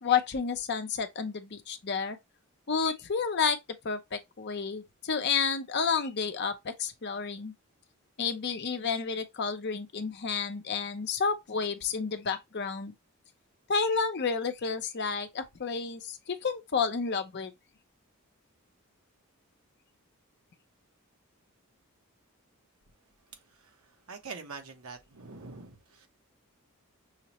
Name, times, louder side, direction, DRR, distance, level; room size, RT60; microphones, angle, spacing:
voice 1, 0.0-2.2 2.7-3.6 3.8-7.5 8.2-12.9 13.7-17.5, left 5 dB, 50° left, 0.6 m, -30 dB
voice 2, 23.3-26.1, right 4 dB, 75° right, 0.9 m, -45 dB
5.6 x 2.1 x 2.9 m
head